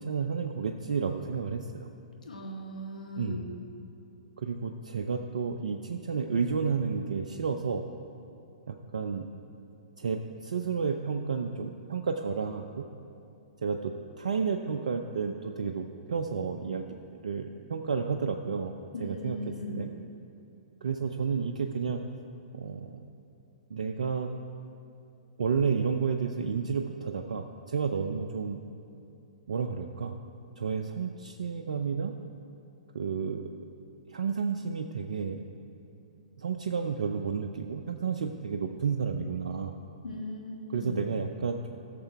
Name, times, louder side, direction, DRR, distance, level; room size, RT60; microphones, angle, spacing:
voice 1, 0.0-1.9 3.2-3.5 4.4-7.8 8.7-9.3 10.0-12.8 13.6-19.9 20.8-22.0 22.5-23.0 23.7-24.3 25.4-28.6 29.5-30.2 30.6-32.1 32.9-33.5 34.1-35.4 36.4-39.7 40.7-41.7, right 5 dB, 70° right, 4 dB, 0.5 m, -31 dB
voice 2, 2.2-3.5 18.9-19.8 40.0-41.0, left 1 dB, 85° left, 1 dB, 1.6 m, -38 dB
15.5 x 6.7 x 4.6 m, 2.7 s
hypercardioid pair, 120°, 4 cm